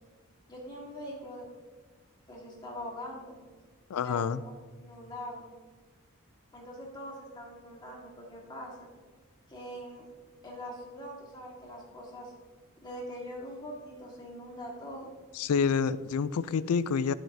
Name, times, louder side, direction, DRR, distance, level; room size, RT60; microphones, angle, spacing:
voice 1, 0.5-1.5 2.3-3.4 4.0-4.5 4.8-5.5 6.5-8.9 9.5-10.0 10.4-12.3 12.8-15.1, equal, 20° left, -3 dB, 1.7 m, -42 dB
voice 2, 3.9-4.4 15.3-17.1, left 6 dB, 90° left, 17 dB, 0.4 m, -28 dB
11.5 x 7.5 x 2.7 m, 1.5 s
head